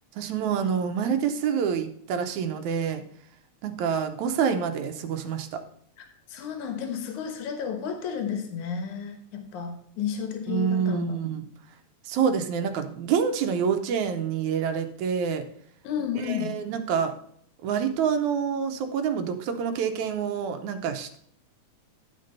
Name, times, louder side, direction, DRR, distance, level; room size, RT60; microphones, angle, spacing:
voice 1, 0.2-3.0 3.6-5.6 10.5-11.5 12.1-15.4 16.2-17.1 17.6-21.2, right 7 dB, 80° right, 2.2 m, -27 dB
voice 2, 6.0-11.2 15.8-16.5, left 7 dB, 80° left, 2.7 m, -32 dB
11.0 x 5.3 x 5.5 m
omnidirectional pair, 3.4 m